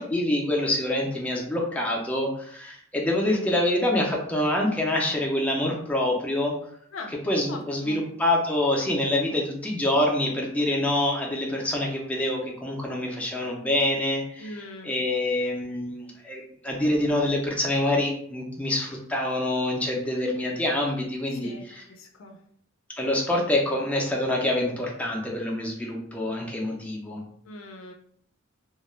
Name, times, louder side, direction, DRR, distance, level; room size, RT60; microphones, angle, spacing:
voice 1, 0.0-6.6 7.3-14.5 14.8-21.8 23.0-27.2, left 1 dB, 5° left, -2 dB, 0.4 m, -26 dB
voice 2, 7.5-8.0 14.4-14.9 21.3-22.4 27.4-27.9, left 2 dB, 75° left, 3 dB, 0.4 m, -41 dB
2.3 x 2.1 x 3.0 m, 0.64 s
head